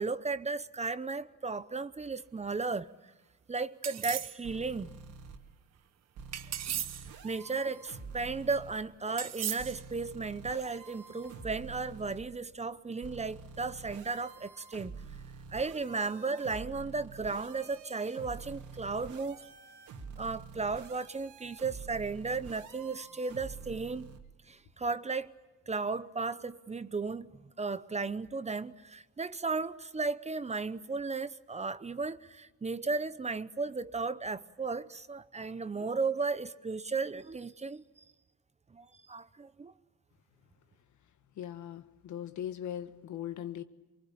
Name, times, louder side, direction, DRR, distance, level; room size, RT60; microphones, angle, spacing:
voice 1, 0.0-2.9 3.5-4.9 6.7-6.9 7.2-14.9 15.5-19.4 20.2-24.1 24.5-25.3 25.7-27.3 27.6-37.8 38.7-39.7, right 4 dB, 20° right, 0.8 m, -35 dB
sound 1, 3.8-4.4 6.3-7.1 9.2-9.8, right 10 dB, 60° right, 1.0 m, -36 dB
sound 2, 4.4-5.4 6.2-8.7 9.6-12.2 13.0-24.2, right 5 dB, 80° right, 2.3 m, -48 dB
voice 2, 41.3-43.6, left 10 dB, 75° left, 1.4 m, -39 dB
24.5 x 23.5 x 8.7 m
cardioid pair, 90°, 30 cm